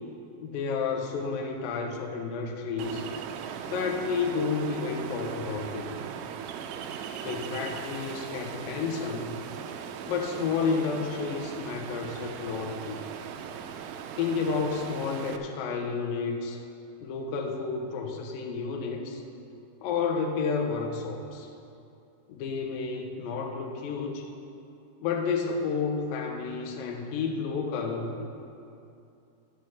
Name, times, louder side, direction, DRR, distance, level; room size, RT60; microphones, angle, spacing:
voice 1, 0.4-3.1 3.7-6.0 7.2-9.4 10.1-13.1 14.2-16.6 17.0-19.2 19.8-21.5 22.3-24.3 25.0-28.3, left 5 dB, 75° left, 3 dB, 2.2 m, -31 dB
Ocean, 2.8-15.4, right 8 dB, 90° right, 3.0 m, -39 dB
11.0 x 7.7 x 5.9 m, 2.6 s
omnidirectional pair, 5.1 m